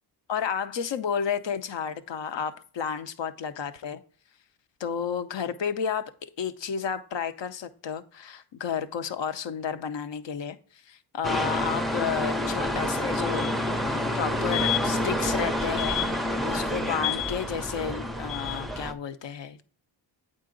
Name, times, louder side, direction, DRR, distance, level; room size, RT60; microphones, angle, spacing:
voice 1, 0.3-4.0 4.8-13.5 13.9-19.6, left 7 dB, 65° left, 10 dB, 0.7 m, -32 dB
sound 1, 11.2-18.9, left 1 dB, ahead, 0.5 m, -28 dB
8.3 x 3.9 x 3.8 m, 0.43 s
cardioid pair, 60°, 48 cm